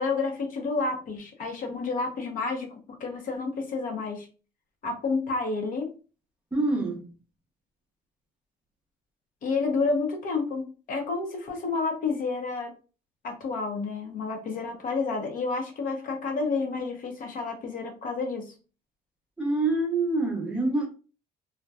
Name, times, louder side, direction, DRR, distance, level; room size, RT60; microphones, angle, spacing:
voice 1, 0.0-2.7 3.0-4.3 4.8-5.9 9.4-12.7 13.2-18.5, left 4 dB, 55° left, 0.8 m, -30 dB
voice 2, 6.5-7.0 19.4-20.9, right 2 dB, 5° right, 0.7 m, -26 dB
2.7 x 2.2 x 2.2 m
cardioid pair, 110°, 17 cm